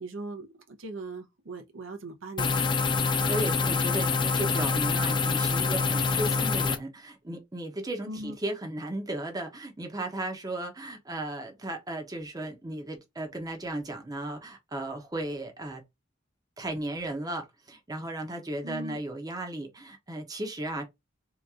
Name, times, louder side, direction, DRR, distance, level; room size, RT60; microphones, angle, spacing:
voice 1, 0.0-2.6 8.0-8.4 18.6-19.0, right 2 dB, 85° right, 0.8 m, -39 dB
sound 1, 2.4-6.8, left 4 dB, 25° left, 0.4 m, -26 dB
voice 2, 3.0-15.8 16.6-20.9, right 1 dB, 20° right, 0.8 m, -35 dB
2.9 x 2.5 x 3.5 m
head